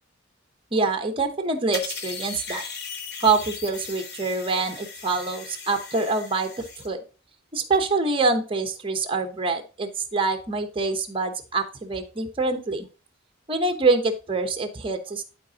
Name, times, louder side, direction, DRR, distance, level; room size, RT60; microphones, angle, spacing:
voice 1, 0.7-2.6 3.2-7.0 7.5-12.9 13.5-15.2, right 3 dB, 25° right, 6 dB, 0.9 m, -25 dB
sound 1, 1.7-6.9, left 5 dB, 55° left, 0.9 m, -37 dB
12.0 x 4.2 x 2.8 m, 0.34 s
head